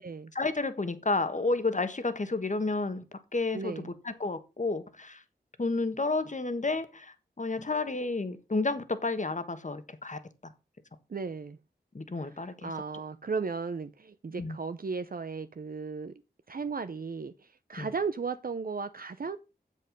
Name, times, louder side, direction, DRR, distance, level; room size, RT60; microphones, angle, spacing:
voice 1, 0.3-3.0 3.3-5.2 5.6-10.2 11.9-12.7 14.4-14.6 17.8-17.9, left 3 dB, 45° left, 1.3 m, -31 dB
voice 2, 3.5-3.9 11.1-11.6 12.2-16.1 16.5-19.4, right 5 dB, 55° right, 0.6 m, -35 dB
7.6 x 7.5 x 5.2 m
wide cardioid pair, 60°, 17 cm